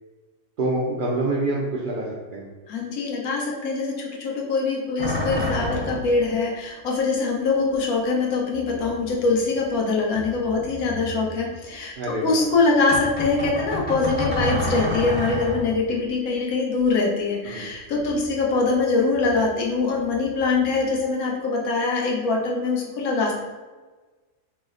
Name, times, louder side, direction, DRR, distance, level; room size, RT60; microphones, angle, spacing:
voice 1, 0.6-2.5 12.0-12.4 17.4-17.7, right 2 dB, 80° right, -4 dB, 0.4 m, -26 dB
voice 2, 2.7-3.9 4.2-11.9 12.2-23.3, left 3 dB, 85° left, -1 dB, 1.2 m, -23 dB
sound 1, 5.0-6.2 7.7-7.8 8.5-9.7 10.1-11.6 12.9-15.9 17.9-18.8 19.1-19.6 20.0-21.0, equal, 10° left, 1.0 m, -30 dB
3.2 x 2.0 x 3.7 m, 1.3 s
omnidirectional pair, 1.5 m